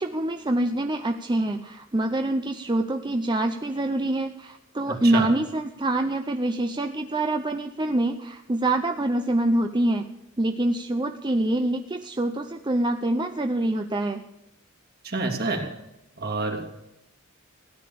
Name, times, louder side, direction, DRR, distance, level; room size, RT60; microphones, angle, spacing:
voice 1, 0.0-10.1 10.4-14.2, right 1 dB, 20° right, 6 dB, 0.7 m, -25 dB
voice 2, 15.0-15.6 16.2-16.7, right 3 dB, 50° right, 3 dB, 2.8 m, -27 dB
16.0 x 10.5 x 7.0 m, 0.92 s
head